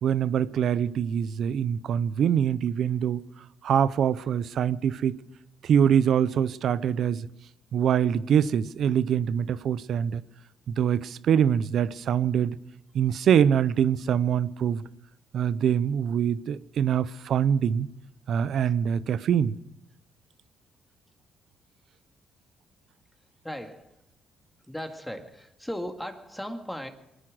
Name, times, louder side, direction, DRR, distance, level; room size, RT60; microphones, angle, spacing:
voice 1, 0.0-3.2 3.6-5.2 5.6-7.3 7.7-10.2 10.7-12.6 12.9-14.8 15.3-17.9 18.3-19.6, right 8 dB, 70° right, 0.6 m, -24 dB
voice 2, 23.4-23.9 24.7-26.9, equal, 5° left, 2.0 m, -37 dB
23.0 x 10.0 x 6.2 m
cardioid pair, 90°, 0 cm